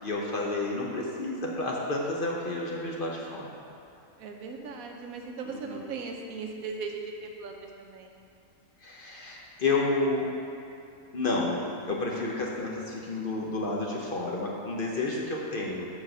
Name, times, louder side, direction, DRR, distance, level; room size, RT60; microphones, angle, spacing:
voice 1, 0.0-3.5 5.4-5.9 8.8-10.3 11.1-15.9, left 2 dB, 50° left, -2 dB, 0.8 m, -30 dB
voice 2, 4.2-8.2, right 4 dB, 85° right, 3 dB, 1.2 m, -38 dB
5.7 x 4.8 x 6.4 m, 2.5 s
omnidirectional pair, 1.5 m